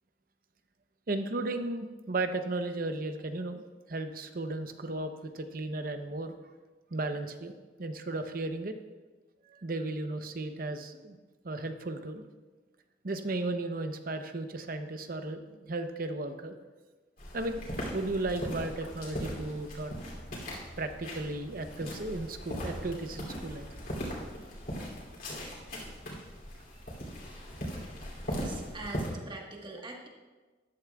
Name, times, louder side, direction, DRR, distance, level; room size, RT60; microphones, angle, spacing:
voice 1, 1.1-6.3 6.9-7.5 7.8-8.8 9.5-11.2 11.4-12.2 13.0-16.5 17.3-17.7 17.9-19.9 20.8-23.7, right 2 dB, 55° right, 8 dB, 0.7 m, -35 dB
sound 1, 17.2-29.1, equal, 55° left, 2.8 m, -39 dB
voice 2, 28.3-30.1, right 2 dB, 25° right, 0 dB, 1.4 m, -43 dB
13.5 x 11.5 x 2.3 m, 1.3 s
head